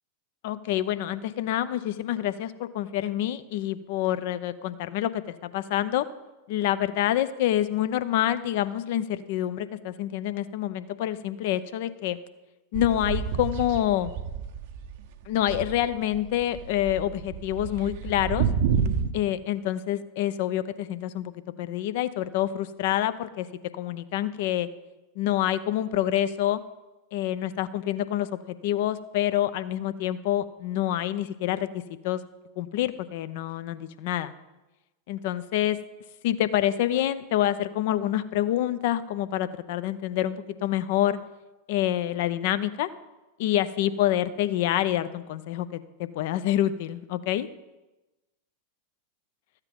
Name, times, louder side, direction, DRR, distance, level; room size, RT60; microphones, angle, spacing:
voice 1, 0.4-6.1 6.5-12.2 12.7-14.1 15.3-18.5 19.1-23.5 23.7-24.7 25.2-26.6 27.1-31.7 32.0-32.2 32.6-34.3 35.1-35.8 36.2-41.2 41.7-42.9 43.4-47.5, left 12 dB, 50° left, 13 dB, 0.6 m, -27 dB
sound 1, 12.7-15.1 15.3-19.1, right 7 dB, 50° right, 0.8 m, -29 dB
14.0 x 8.2 x 5.3 m, 1.1 s
figure-of-eight pair, 90°, 0 cm